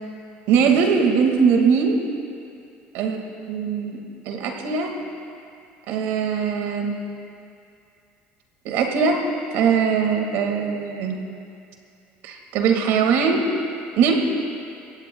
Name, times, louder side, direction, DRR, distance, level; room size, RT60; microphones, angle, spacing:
voice 1, 0.5-2.0 2.9-3.2 3.5-4.0 4.3-4.9 5.9-7.0 8.7-9.2 9.5-11.2 12.2-13.5 14.0-14.1, right 6 dB, 70° right, 2 dB, 1.9 m, -20 dB
23.0 x 16.5 x 2.3 m, 2.6 s
cardioid pair, 120°, 4 cm